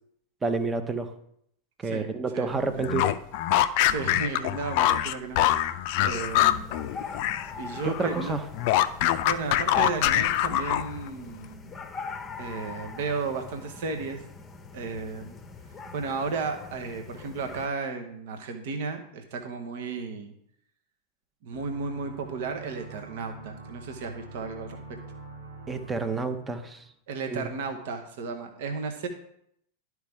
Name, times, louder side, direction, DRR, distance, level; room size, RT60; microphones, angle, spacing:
voice 1, 0.4-1.1 1.8-3.1 7.8-8.4 25.7-26.9 27.3-27.5, right 3 dB, 15° right, 9 dB, 0.8 m, -29 dB
voice 2, 2.3-3.0 3.9-5.4 6.0-6.8 7.6-8.4 9.1-11.7 12.4-14.2 14.7-15.4 15.9-20.3 21.4-24.8 27.1-29.1, right 4 dB, 55° right, 5 dB, 1.0 m, -34 dB
sound 1, 2.8-7.5 7.8-11.1, left 13 dB, 45° left, 0.4 m, -24 dB
sound 2, 6.0-17.7, left 4 dB, 15° left, 0.9 m, -43 dB
sound 3, 21.5-26.9, right 3 dB, 85° right, 2.9 m, -45 dB
11.5 x 4.6 x 3.6 m, 0.72 s
figure-of-eight pair, 90°, 0 cm